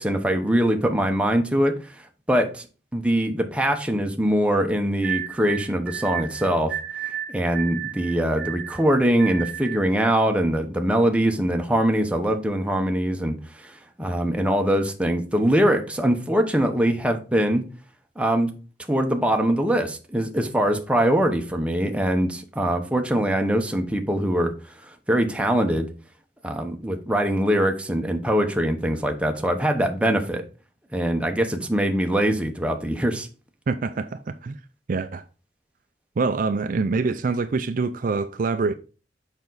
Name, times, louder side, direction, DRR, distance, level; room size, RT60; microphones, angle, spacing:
voice 1, 0.0-1.7 2.3-2.7 2.9-6.7 7.3-13.3 14.0-17.7 18.2-18.5 18.9-24.5 25.1-25.9 26.4-30.4 30.9-33.3, equal, 5° right, 0.9 m, -22 dB
sound 1, 5.0-9.9, right 10 dB, 70° right, 0.8 m, -33 dB
voice 2, 33.7-34.6 34.9-35.2 36.2-38.7, right 4 dB, 50° right, 0.4 m, -25 dB
7.0 x 5.3 x 3.9 m
head